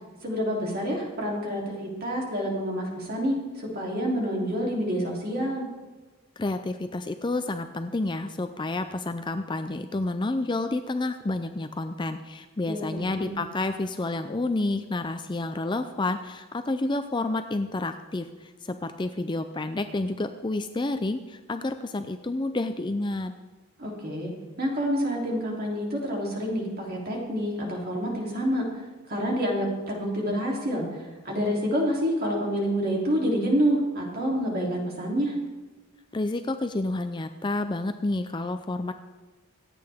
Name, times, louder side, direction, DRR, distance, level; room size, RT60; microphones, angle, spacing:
voice 1, 0.2-5.7 12.6-13.4 23.8-24.3 24.6-28.6 29.1-35.3, equal, 40° right, -2 dB, 3.2 m, -28 dB
voice 2, 6.4-23.3 36.1-38.9, left 2 dB, 20° left, 8 dB, 0.4 m, -29 dB
26.0 x 8.7 x 3.6 m, 1.3 s
head